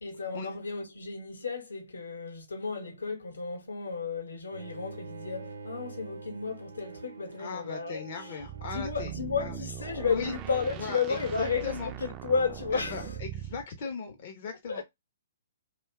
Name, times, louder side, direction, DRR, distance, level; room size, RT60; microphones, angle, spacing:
voice 1, 0.0-8.3 8.6-13.2 14.1-14.2 14.7-14.8, left 5 dB, 70° left, 0.9 m, -33 dB
Bowed string instrument, 4.5-9.5, right 4 dB, 75° right, 0.7 m, -46 dB
voice 2, 7.4-9.1 9.4-9.5 10.1-10.3 10.8-11.9 12.7-14.8, left 6 dB, 45° left, 0.6 m, -38 dB
sound 1, 8.4-13.6, right 11 dB, 25° right, 0.3 m, -40 dB
2.7 x 2.2 x 3.4 m
figure-of-eight pair, 125°, 0 cm